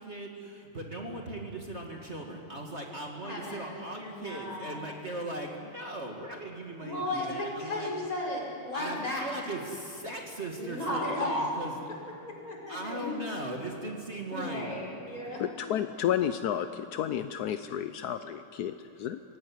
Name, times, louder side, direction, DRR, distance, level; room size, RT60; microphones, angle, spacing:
voice 1, 0.0-7.9 8.7-11.7 12.7-14.8 15.1-15.4, right 1 dB, 30° right, 0 dB, 2.1 m, -39 dB
voice 2, 3.2-4.8 6.8-9.3 10.5-11.5 12.3-13.2 14.3-15.4, left 1 dB, 40° left, -2 dB, 5.7 m, -34 dB
voice 3, 15.4-19.2, left 10 dB, 70° left, 10 dB, 0.9 m, -31 dB
25.0 x 17.0 x 9.8 m, 2.8 s
omnidirectional pair, 2.3 m